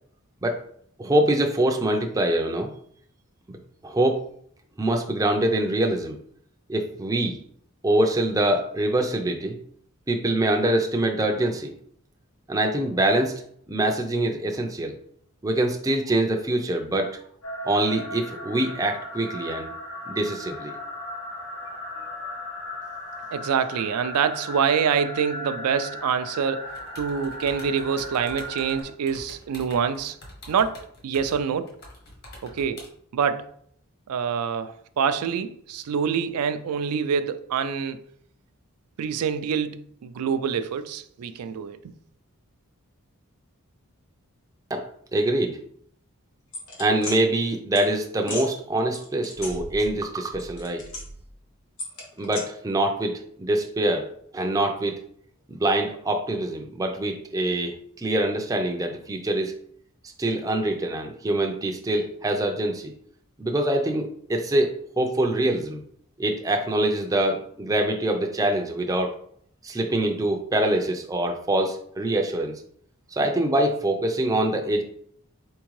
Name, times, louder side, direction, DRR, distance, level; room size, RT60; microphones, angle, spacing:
voice 1, 1.0-2.7 3.8-4.2 4.8-6.2 6.7-7.4 7.8-9.6 10.1-11.7 12.5-13.4 13.7-14.9 15.4-17.1 17.6-19.7 20.1-20.7 44.7-44.9 45.1-45.6 46.8-50.9 52.2-55.0 55.5-59.5 60.2-62.9 63.4-65.8 66.2-69.2 69.6-72.6 73.1-74.8, right 1 dB, 15° right, 0.4 m, -24 dB
sound 1, 17.4-28.8, left 1 dB, 90° left, 1.4 m, -37 dB
voice 2, 23.3-30.2 30.5-31.7 32.4-32.8 33.1-33.5 34.1-38.0 39.0-41.8, right 7 dB, 90° right, 0.4 m, -26 dB
sound 2, 26.7-32.9, left 1 dB, 45° left, 1.2 m, -45 dB
sound 3, 46.5-47.2 47.7-47.9 48.2-48.5 48.9-50.0 50.3-51.3 51.8-52.4, left 1 dB, 70° left, 1.5 m, -36 dB
4.3 x 3.6 x 3.1 m
head